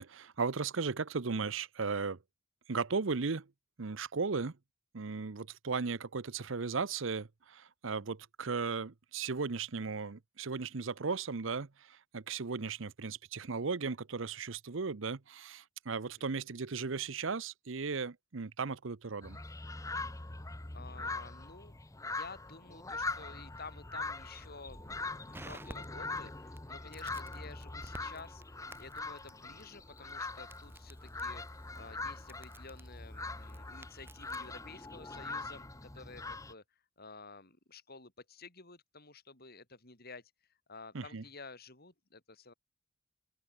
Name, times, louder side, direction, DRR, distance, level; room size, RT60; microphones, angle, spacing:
voice 1, 0.0-2.2 2.7-3.5 3.8-4.6 4.9-19.4 40.9-41.2, right 4 dB, 65° right, 0.8 m, -36 dB
sound 1, 19.2-36.5, left 3 dB, 15° left, 0.9 m, -42 dB
voice 2, 20.7-24.8 25.1-36.6 37.0-40.3 40.7-42.5, left 4 dB, 50° left, 6.2 m, -52 dB
Crackle, 24.7-34.5, right 1 dB, 10° right, 2.1 m, -55 dB
open air
head